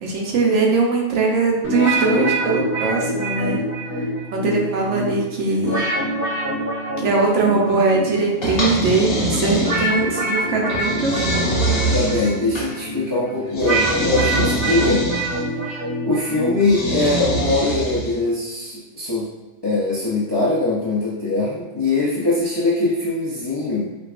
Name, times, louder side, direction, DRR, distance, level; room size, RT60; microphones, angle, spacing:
voice 1, 0.0-3.6 3.9-4.0 4.3-5.9 7.0-11.5, right 3 dB, 75° right, -1 dB, 1.0 m, -21 dB
sound 1, 1.6-17.6, right 1 dB, 50° right, 1.8 m, -26 dB
sound 2, 8.4-10.1 10.7-12.7 13.5-15.4 16.6-18.2, right 1 dB, 55° left, 0.9 m, -24 dB
voice 2, 11.9-15.1 16.0-19.3 19.6-23.9, left 2 dB, 40° left, -8 dB, 0.4 m, -22 dB
4.4 x 2.3 x 2.4 m, 1.2 s
omnidirectional pair, 1.3 m